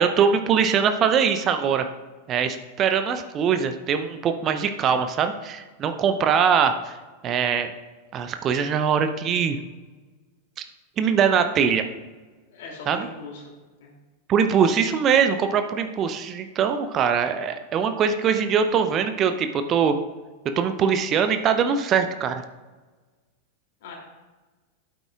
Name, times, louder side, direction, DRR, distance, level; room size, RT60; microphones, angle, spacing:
voice 1, 0.0-1.9 2.3-6.9 7.2-7.7 8.1-9.6 11.0-11.8 12.9-13.1 14.3-20.0 20.4-22.4, right 7 dB, 30° right, 8 dB, 0.6 m, -22 dB
voice 2, 12.5-13.4 13.8-13.9 23.8-24.0, left 3 dB, 55° left, -1 dB, 2.7 m, -39 dB
11.5 x 9.1 x 2.4 m, 1.3 s
figure-of-eight pair, 90°, 0 cm